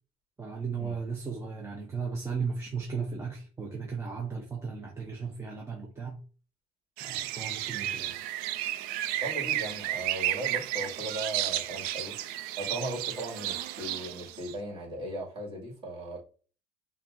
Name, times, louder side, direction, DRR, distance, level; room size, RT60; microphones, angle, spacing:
voice 1, 0.4-6.2 7.0-8.2, right 5 dB, 15° right, 0.7 m, -36 dB
sound 1, 7.0-14.5, right 13 dB, 75° right, 0.4 m, -33 dB
voice 2, 9.2-12.1 12.5-16.2, right 1 dB, 35° right, 2.1 m, -37 dB
5.6 x 2.3 x 2.6 m
cardioid pair, 120°, 15 cm